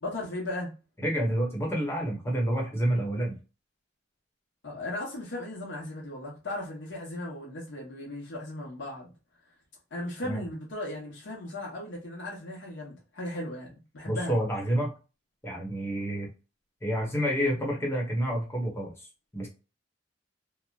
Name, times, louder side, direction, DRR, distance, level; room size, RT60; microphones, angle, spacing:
voice 1, 0.0-0.7 4.6-9.1 9.9-14.3, left 1 dB, 85° left, 0.8 m, -37 dB
voice 2, 1.0-3.3 10.2-10.5 14.1-14.9 15.4-16.3 16.8-18.9 19.3-19.5, equal, 15° left, 0.8 m, -28 dB
3.0 x 2.0 x 2.2 m
head